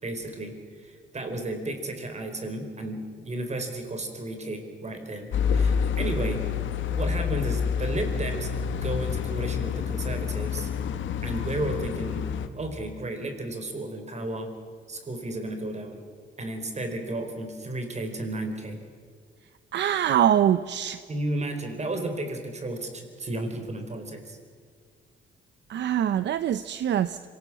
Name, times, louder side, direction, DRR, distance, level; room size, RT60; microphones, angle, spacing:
voice 1, 0.0-6.4 6.9-8.5 8.8-10.7 11.2-12.3 12.6-14.5 14.9-16.0 16.4-18.8 21.1-24.4, right 1 dB, 35° right, 6 dB, 4.5 m, -33 dB
sound 1, 5.3-12.5, left 7 dB, 75° left, 1.5 m, -28 dB
voice 2, 19.7-21.0 25.7-27.2, right 10 dB, 65° right, 13 dB, 0.7 m, -24 dB
25.5 x 18.5 x 7.5 m, 2.1 s
cardioid pair, 90°, 20 cm